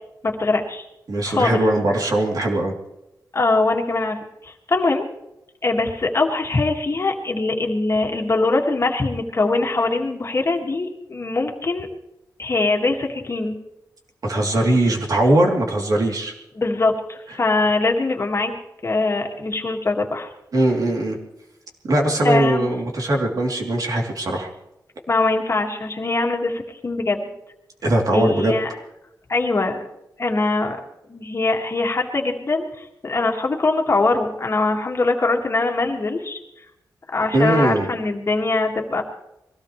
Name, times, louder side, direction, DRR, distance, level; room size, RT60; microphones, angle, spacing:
voice 1, 0.2-0.9 1.2-1.6 3.3-5.1 5.6-11.9 12.4-13.6 16.5-18.5 18.8-20.3 22.2-22.7 25.1-27.2 28.1-28.7 29.3-29.8 30.2-30.8 31.1-36.4 37.1-39.0, left 3 dB, 40° left, 2 dB, 2.2 m, -22 dB
voice 2, 1.1-2.7 14.2-16.3 20.5-21.2 21.9-24.5 27.8-28.5 37.3-37.9, right 1 dB, 60° right, -1 dB, 3.4 m, -20 dB
23.0 x 17.0 x 3.3 m, 0.87 s
wide cardioid pair, 115°, 7 cm